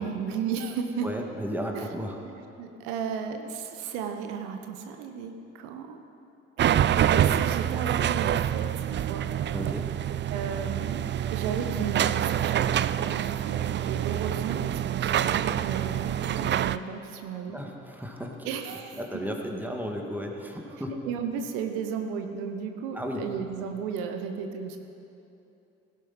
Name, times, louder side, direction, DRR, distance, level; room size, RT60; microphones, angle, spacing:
voice 1, 0.0-1.1 1.7-1.9 2.2-6.0 6.6-9.2 10.3-11.0 11.3-17.6 18.4-19.2 20.7-24.8, right 6 dB, 80° right, 6 dB, 0.9 m, -34 dB
voice 2, 1.0-2.2 9.5-9.9 17.5-18.5 19.0-20.9 22.9-23.2, equal, 5° right, 1 dB, 2.0 m, -34 dB
sound 1, 6.6-16.8, right 10 dB, 35° right, 0.4 m, -26 dB
16.5 x 11.5 x 4.2 m, 2.8 s
hypercardioid pair, 45°, 32 cm